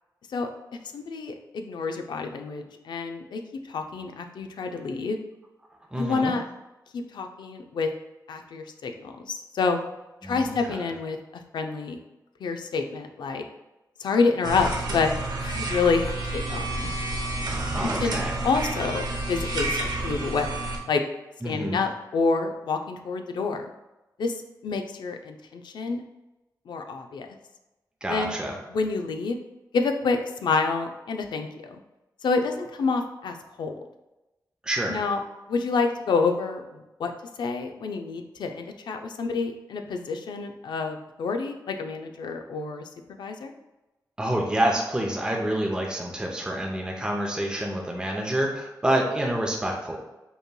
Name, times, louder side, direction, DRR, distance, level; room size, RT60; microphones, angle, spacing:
voice 1, 0.9-3.4 3.7-5.2 5.9-6.4 6.9-7.9 8.3-9.8 10.2-11.2 11.5-12.0 12.4-13.5 14.0-14.7 14.9-15.1 15.4-16.9 18.0-18.2 18.4-20.5 20.9-21.0 21.4-23.6 24.2-26.0 26.7-27.3 28.1-28.4 28.7-29.4 29.7-31.8 32.2-33.7 34.9-35.2 35.5-37.1 37.4-42.8 43.2-43.5, left 4 dB, 90° left, 5 dB, 0.4 m, -28 dB
voice 2, 5.9-6.3 10.2-10.8 17.7-18.3 21.4-21.8 28.0-28.5 34.6-35.0 44.2-50.0, right 1 dB, 10° right, -1 dB, 0.6 m, -27 dB
sound 1, 14.4-20.8, right 2 dB, 65° right, 0.8 m, -30 dB
5.4 x 3.0 x 2.2 m, 1.0 s
wide cardioid pair, 100°, 7 cm